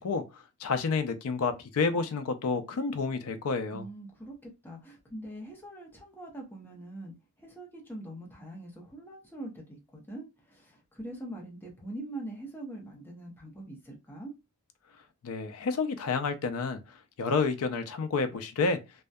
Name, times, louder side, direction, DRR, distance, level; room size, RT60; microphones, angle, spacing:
voice 1, 0.0-3.9 15.2-16.8 17.2-18.8, left 4 dB, 75° left, 0.4 m, -29 dB
voice 2, 3.7-14.3, right 1 dB, 10° left, 0.6 m, -43 dB
2.6 x 2.2 x 2.2 m
head